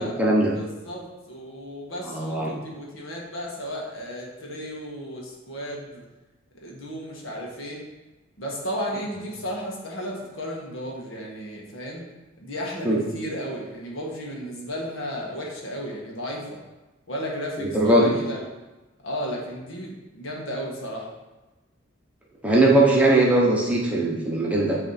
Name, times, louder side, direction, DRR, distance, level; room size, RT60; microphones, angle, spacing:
voice 1, 0.0-0.5 2.0-2.6 12.8-13.0 17.6-18.1 22.4-24.8, right 1 dB, 5° right, -4 dB, 1.1 m, -20 dB
voice 2, 0.5-6.0 6.5-7.8 8.4-12.0 12.4-16.6 17.1-18.5 19.0-21.1, equal, 85° left, -2 dB, 1.5 m, -34 dB
9.6 x 3.3 x 4.3 m, 1.1 s
head